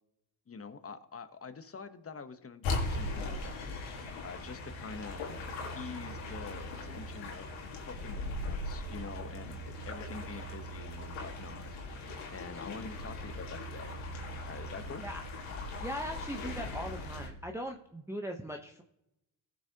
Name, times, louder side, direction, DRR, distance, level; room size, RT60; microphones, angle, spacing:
voice 1, 0.5-3.8 4.2-5.2 5.7-11.8 12.3-13.9 14.4-15.0, left 5 dB, 30° left, 10 dB, 1.1 m, -46 dB
sound 1, 2.6-17.3, left 2 dB, 85° left, 1.8 m, -39 dB
voice 2, 15.8-18.8, equal, 5° right, 2 dB, 0.9 m, -39 dB
15.5 x 6.5 x 2.9 m, 0.83 s
supercardioid pair, 65°, 45 cm